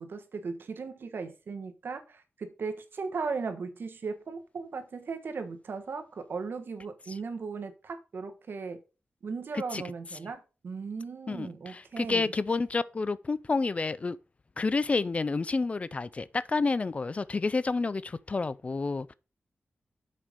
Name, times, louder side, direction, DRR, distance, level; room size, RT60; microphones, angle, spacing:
voice 1, 0.0-8.8 9.2-12.3, right 4 dB, 70° right, 1.4 m, -37 dB
voice 2, 11.3-14.2 14.6-19.1, left 3 dB, 35° left, 0.4 m, -29 dB
7.4 x 5.1 x 5.2 m
wide cardioid pair, 115°, 4 cm